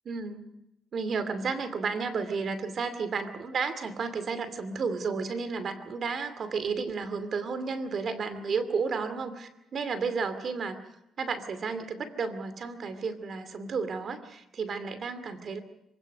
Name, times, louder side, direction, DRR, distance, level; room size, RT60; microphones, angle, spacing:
voice 1, 0.1-0.5 0.9-10.8 11.2-15.6, right 5 dB, 55° right, 11 dB, 2.6 m, -32 dB
26.0 x 17.0 x 6.8 m, 0.87 s
cardioid pair, 90°, 0 cm